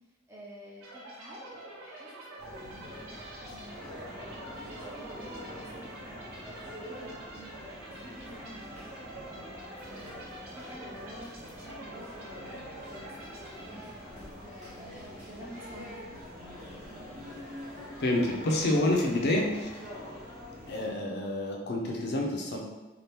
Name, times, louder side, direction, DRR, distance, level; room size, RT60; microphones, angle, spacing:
voice 1, 0.3-2.9 3.4-8.9 9.2-13.3 14.0-16.9, equal, 10° right, -6 dB, 0.6 m, -50 dB
sound 1, 0.8-14.4, right 2 dB, 80° right, 0.8 m, -47 dB
sound 2, 2.4-20.9, left 1 dB, 35° right, 0.9 m, -45 dB
voice 2, 18.0-19.7 20.7-22.6, left 1 dB, 55° left, 0 dB, 0.5 m, -28 dB
2.8 x 2.4 x 3.4 m, 1.2 s
head